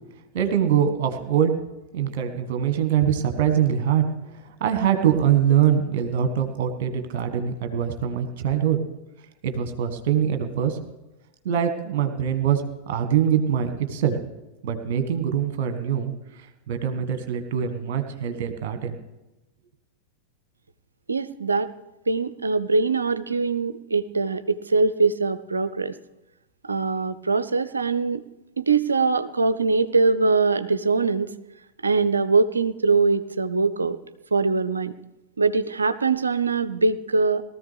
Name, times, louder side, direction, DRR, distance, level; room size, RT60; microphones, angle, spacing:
voice 1, 0.3-1.5 1.9-4.0 4.3-8.8 9.4-10.8 11.4-14.2 14.6-16.1 16.4-19.0, right 9 dB, 50° right, 7 dB, 1.4 m, -23 dB
voice 2, 21.1-21.7 22.1-25.9 26.6-28.2 28.6-31.3 31.8-34.0 34.3-34.9 35.4-37.4, right 4 dB, 75° right, 14 dB, 0.5 m, -22 dB
19.0 x 14.0 x 3.4 m, 1.0 s
figure-of-eight pair, 90°, 0 cm